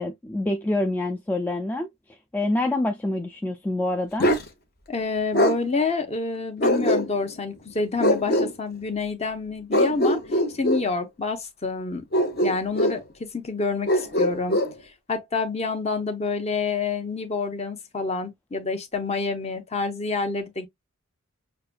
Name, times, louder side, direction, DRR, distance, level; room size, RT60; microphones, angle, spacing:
voice 1, 0.0-4.3, left 2 dB, 10° left, 0.3 m, -27 dB
Bark, 4.2-4.5 5.3-5.6 6.6-7.3 8.0-8.5 9.7-10.9 12.1-13.0 13.9-14.7, equal, 50° left, 1.1 m, -22 dB
voice 2, 4.9-12.0 12.4-14.6 15.1-20.7, left 4 dB, 30° left, 0.8 m, -28 dB
6.5 x 2.3 x 2.5 m
head